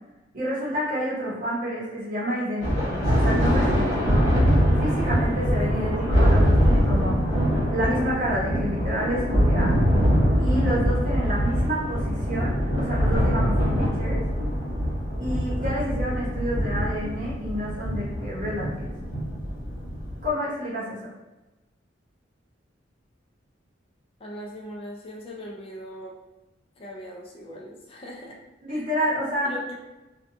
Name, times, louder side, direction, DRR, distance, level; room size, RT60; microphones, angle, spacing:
voice 1, 0.3-4.2 4.8-7.2 7.7-9.7 10.4-14.2 15.2-18.9 20.2-21.1 28.6-29.5, equal, 45° right, -8 dB, 0.8 m, -29 dB
Thunder, 2.6-20.3, equal, 80° left, 1.1 m, -23 dB
voice 2, 4.6-5.0 15.1-15.6 24.2-26.2 26.8-28.4 28.7-28.8 29.4-29.7, equal, 30° left, -2 dB, 0.4 m, -40 dB
2.6 x 2.2 x 2.5 m, 1.0 s
head